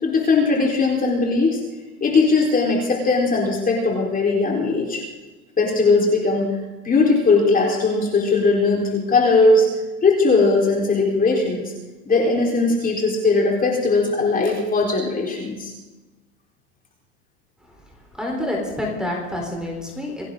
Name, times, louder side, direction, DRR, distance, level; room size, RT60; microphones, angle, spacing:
voice 1, 0.0-1.6 2.0-5.0 5.6-6.5 6.8-9.7 10.0-11.7 12.1-15.7, left 3 dB, 20° left, -1 dB, 4.2 m, -19 dB
voice 2, 18.2-20.2, left 1 dB, ahead, -1 dB, 4.1 m, -27 dB
28.0 x 11.0 x 3.9 m, 1.2 s
supercardioid pair, 125°, 44 cm